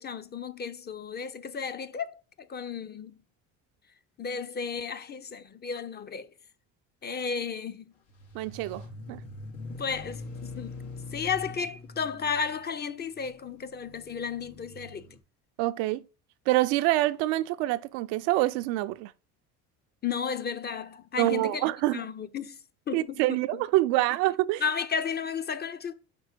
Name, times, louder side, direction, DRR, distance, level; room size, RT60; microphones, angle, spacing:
voice 1, 0.0-3.1 4.2-6.3 7.0-7.9 9.8-15.1 20.0-21.7 21.9-22.6 22.9-23.2 23.5-23.6 24.6-25.9, left 6 dB, 30° left, 0.5 m, -33 dB
sound 1, 8.1-15.2, left 2 dB, 85° left, 1.3 m, -43 dB
voice 2, 8.3-9.2 15.6-16.0 16.5-19.1 21.2-22.0 22.9-24.6, right 17 dB, 75° right, 0.5 m, -26 dB
5.3 x 3.6 x 4.9 m
supercardioid pair, 80°, 37 cm